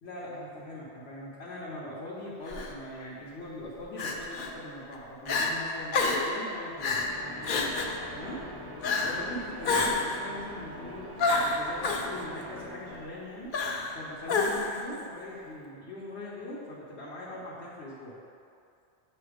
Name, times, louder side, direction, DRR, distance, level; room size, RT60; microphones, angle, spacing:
voice 1, 0.0-7.0 8.1-8.4 9.0-13.5 13.9-18.2, left 1 dB, 80° left, -7 dB, 1.1 m, -41 dB
Crying sobbing, 2.5-2.7 4.0-4.5 4.9-5.0 5.3-5.5 5.9-6.3 6.8-7.1 7.4-8.0 8.8-9.2 9.6-10.2 11.2-12.1 13.5-14.0 14.3-14.8, left 3 dB, 60° left, 0.7 m, -28 dB
sound 1, 6.6-13.5, left 1 dB, 35° right, 0.4 m, -44 dB
7.7 x 2.7 x 4.9 m, 2.5 s
omnidirectional pair, 1.1 m